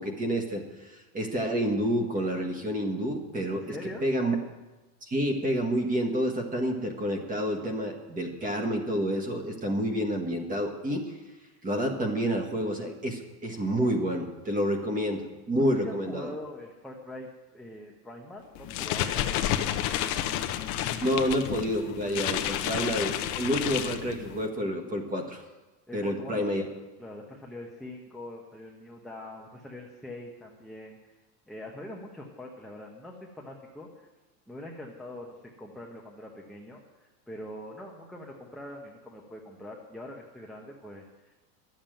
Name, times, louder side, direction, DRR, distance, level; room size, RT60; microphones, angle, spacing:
voice 1, 0.0-3.8 4.0-4.3 5.0-11.0 11.6-16.3 21.0-25.4 25.9-26.6, equal, 15° right, 3 dB, 1.5 m, -29 dB
voice 2, 3.5-4.1 15.5-19.8 25.9-26.5 27.0-31.0 31.5-34.1 34.5-36.8 37.3-41.3, left 1 dB, ahead, -3 dB, 0.8 m, -43 dB
sound 1, 18.6-24.5, left 11 dB, 40° left, 0.8 m, -30 dB
11.0 x 7.4 x 8.9 m, 1.1 s
supercardioid pair, 150°, 49 cm